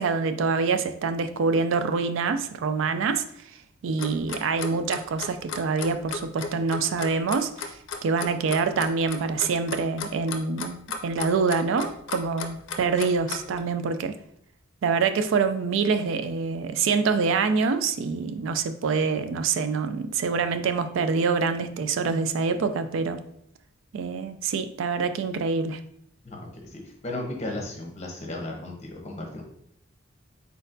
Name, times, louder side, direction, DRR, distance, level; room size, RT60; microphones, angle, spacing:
voice 1, 0.0-3.2 3.8-7.7 8.0-14.2 14.8-23.2 23.9-25.8, right 4 dB, 65° right, 10 dB, 0.3 m, -25 dB
Clock, 4.0-13.6, left 5 dB, 65° left, 0.5 m, -34 dB
voice 2, 26.2-29.4, left 1 dB, 35° left, 1 dB, 1.0 m, -35 dB
4.2 x 4.0 x 2.6 m, 0.68 s
head